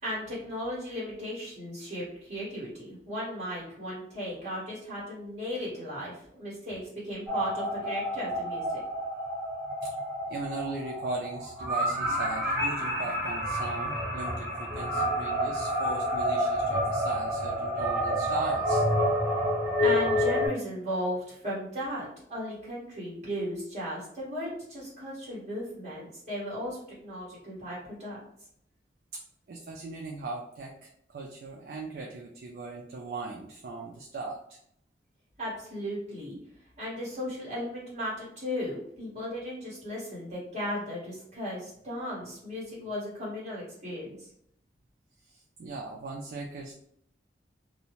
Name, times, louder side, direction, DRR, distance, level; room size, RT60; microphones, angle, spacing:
voice 1, 0.0-8.8 19.8-28.2 35.4-36.4 36.8-44.3, equal, 40° right, -7 dB, 1.4 m, -36 dB
sound 1, 7.3-20.5, equal, 15° right, 1.2 m, -29 dB
voice 2, 10.3-18.8 29.5-34.6 45.3-46.7, right 2 dB, 55° right, 0 dB, 0.3 m, -38 dB
2.6 x 2.0 x 2.9 m, 0.72 s
head